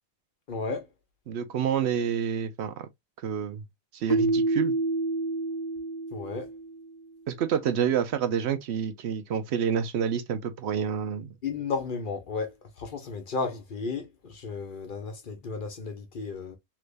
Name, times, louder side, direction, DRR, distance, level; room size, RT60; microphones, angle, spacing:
voice 1, 0.5-0.9 6.1-6.5 11.4-16.6, left 4 dB, 50° left, 1.0 m, -34 dB
voice 2, 1.3-2.9 3.2-3.6 3.9-4.7 7.3-11.3, right 8 dB, 75° right, 0.9 m, -28 dB
Keyboard (musical), 4.1-6.9, right 2 dB, 35° left, 0.4 m, -28 dB
3.3 x 2.9 x 2.5 m
omnidirectional pair, 1.1 m